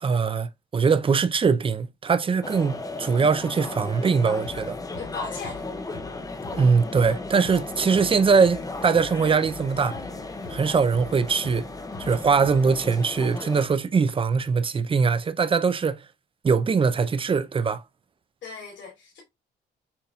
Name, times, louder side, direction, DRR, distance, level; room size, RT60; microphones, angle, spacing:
voice 1, 0.0-4.8 6.5-10.0 10.5-11.7 12.0-16.1 16.4-17.8, right 5 dB, 25° right, 0.4 m, -22 dB
sound 1, 2.4-13.7, left 3 dB, 20° left, 0.6 m, -36 dB
sound 2, 4.4-12.9, left 3 dB, 85° left, 2.4 m, -45 dB
voice 2, 5.0-5.6 18.4-19.2, left 4 dB, 65° left, 2.6 m, -37 dB
6.9 x 2.7 x 2.3 m
cardioid pair, 90°, 20 cm